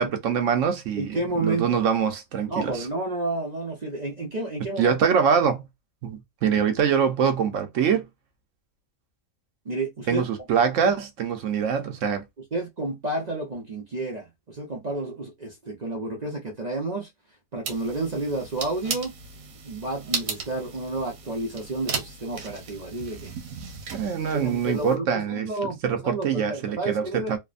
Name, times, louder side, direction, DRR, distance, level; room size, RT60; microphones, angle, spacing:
voice 1, 0.0-1.1 1.4-2.9 4.8-5.7 6.0-8.1 10.1-12.3 23.9-27.4, right 7 dB, 70° right, 1.0 m, -24 dB
voice 2, 1.0-1.9 2.5-5.0 9.6-10.2 10.8-10.9 12.5-17.1 17.5-19.1 19.6-23.3 24.3-25.8 26.0-27.3, right 2 dB, 40° right, 0.7 m, -30 dB
sound 1, 17.6-25.0, right 5 dB, 90° right, 1.2 m, -36 dB
3.2 x 2.1 x 2.4 m
omnidirectional pair, 1.4 m